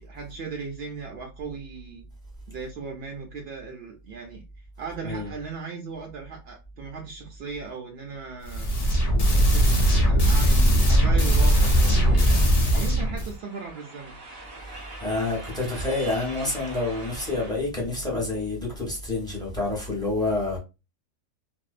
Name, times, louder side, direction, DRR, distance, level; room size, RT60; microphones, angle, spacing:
voice 1, 0.0-2.0 2.5-4.4 4.8-8.7 9.3-14.2, right 5 dB, 80° right, 0.5 m, -37 dB
sound 1, 8.4-13.3, equal, 70° left, 0.3 m, -19 dB
sound 2, 11.3-17.5, right 2 dB, 45° right, 0.7 m, -43 dB
voice 2, 14.6-20.6, left 2 dB, 5° left, 0.6 m, -28 dB
2.6 x 2.1 x 2.4 m
omnidirectional pair, 1.7 m